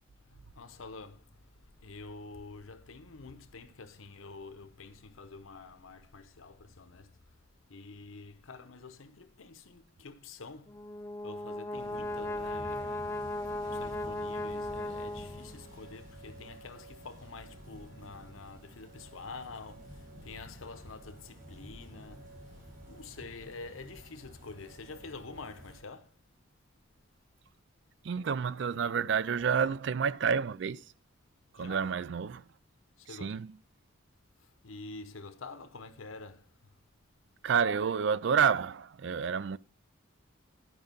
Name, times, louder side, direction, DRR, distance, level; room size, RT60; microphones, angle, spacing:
voice 1, 0.2-7.4 7.7-10.8 11.2-13.2 13.6-26.2 31.6-31.9 33.0-33.4 34.4-36.5, left 3 dB, 80° left, 0.9 m, -48 dB
Brass instrument, 10.7-15.7, left 1 dB, 15° left, 0.3 m, -37 dB
sound 1, 11.7-25.8, equal, 40° right, 3.0 m, -50 dB
voice 2, 28.0-30.8 31.5-32.4 33.2-33.5 37.4-39.6, right 6 dB, 60° right, 0.3 m, -29 dB
11.0 x 5.2 x 5.2 m
head